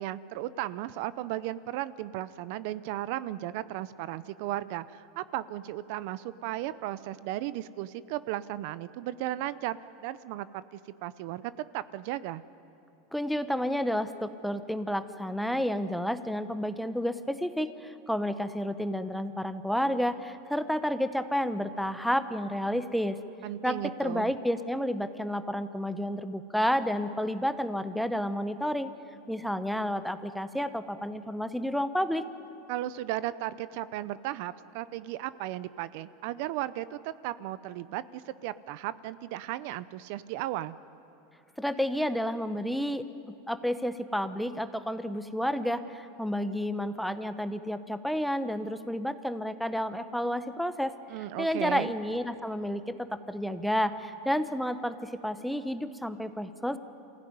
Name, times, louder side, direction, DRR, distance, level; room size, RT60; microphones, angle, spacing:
voice 1, 0.0-11.4 11.7-12.4 23.4-24.3 32.7-40.7 51.1-51.9, right 14 dB, 60° right, 16 dB, 0.6 m, -35 dB
voice 2, 13.1-23.2 23.6-28.9 29.3-32.3 41.6-43.1 43.5-50.9 51.4-56.8, equal, ahead, 10 dB, 0.8 m, -30 dB
27.0 x 16.0 x 9.5 m, 2.8 s
supercardioid pair, 145°, 0 cm